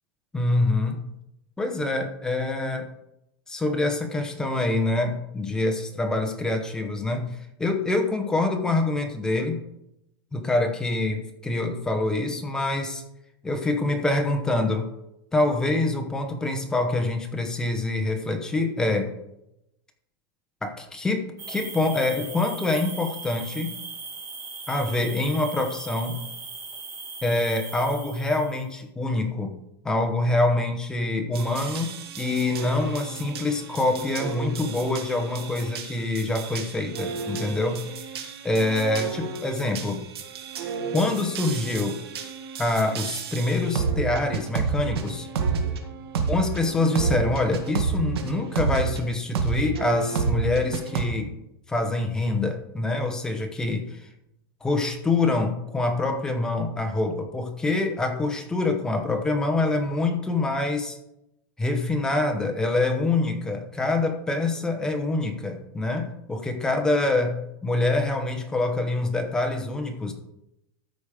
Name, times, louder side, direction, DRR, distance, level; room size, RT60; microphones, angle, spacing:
voice 1, 0.3-1.1 1.6-2.9 3.5-9.6 10.3-13.0 13.4-14.9 15.3-19.1 20.6-23.8 24.7-26.2 27.2-29.5 29.8-38.0 38.4-40.0 40.9-42.0 42.6-45.3 46.3-51.4 51.7-54.1 54.6-61.0 61.6-70.1, left 2 dB, 5° left, 4 dB, 0.9 m, -25 dB
sound 1, 21.4-28.6, right 4 dB, 20° right, 2.7 m, -39 dB
sound 2, 31.3-49.0 49.3-51.0, right 5 dB, 80° right, 1.9 m, -31 dB
13.0 x 5.1 x 5.0 m, 0.84 s
supercardioid pair, 175°, 13 cm